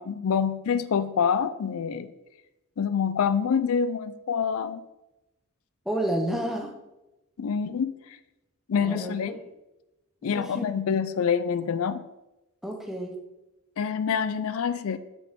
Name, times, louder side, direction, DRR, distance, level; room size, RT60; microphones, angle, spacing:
voice 1, 0.0-2.1 2.8-4.8 7.4-7.9 8.7-9.4 10.2-12.0 13.8-15.0, left 6 dB, 65° left, 13 dB, 0.4 m, -26 dB
voice 2, 5.9-6.8 8.8-9.4 10.2-10.6 12.6-13.2, right 1 dB, ahead, 1 dB, 0.7 m, -30 dB
5.7 x 5.0 x 3.6 m, 0.97 s
head